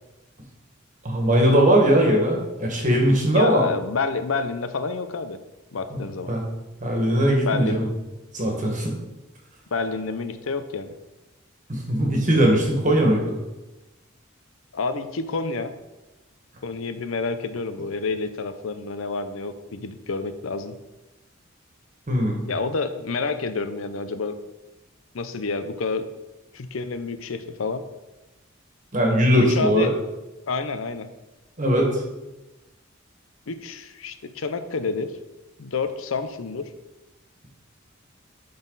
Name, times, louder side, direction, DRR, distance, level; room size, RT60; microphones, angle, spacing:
voice 1, 1.0-3.6 6.3-6.4 6.8-7.9 8.3-8.9 11.7-13.3 22.1-22.4 28.9-29.9 31.6-32.0, equal, 40° right, 1 dB, 1.6 m, -20 dB
voice 2, 3.3-5.4 5.7-6.3 7.5-7.8 9.7-10.9 14.7-15.7 16.6-20.8 22.5-24.4 25.1-26.1 26.5-27.8 29.5-29.9 30.5-31.1 33.5-35.1 35.6-36.7, left 4 dB, 85° left, 10 dB, 0.6 m, -28 dB
11.0 x 4.0 x 4.0 m, 1.0 s
head